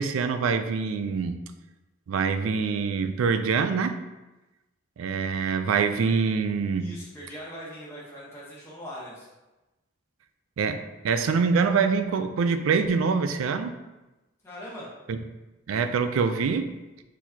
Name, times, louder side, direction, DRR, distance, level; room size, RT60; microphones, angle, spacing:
voice 1, 0.0-1.4 2.1-4.0 5.0-6.9 10.6-13.7 15.1-15.2 15.7-16.7, right 5 dB, 85° right, 9 dB, 0.4 m, -25 dB
voice 2, 6.8-9.3 14.4-14.9, equal, 15° left, -8 dB, 1.0 m, -41 dB
4.5 x 4.0 x 2.8 m, 1.1 s
head